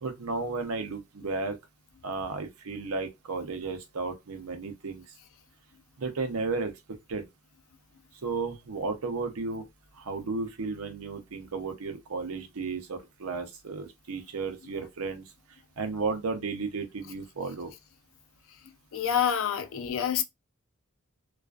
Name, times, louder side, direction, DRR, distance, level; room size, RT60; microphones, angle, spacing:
voice 1, 0.0-1.6 2.0-5.0 6.0-6.7 7.1-7.3 8.2-9.7 10.0-15.2 15.8-17.7, right 4 dB, 85° right, 0.6 m, -33 dB
voice 2, 18.9-20.2, left 8 dB, 65° left, 0.4 m, -27 dB
2.4 x 2.3 x 2.3 m
head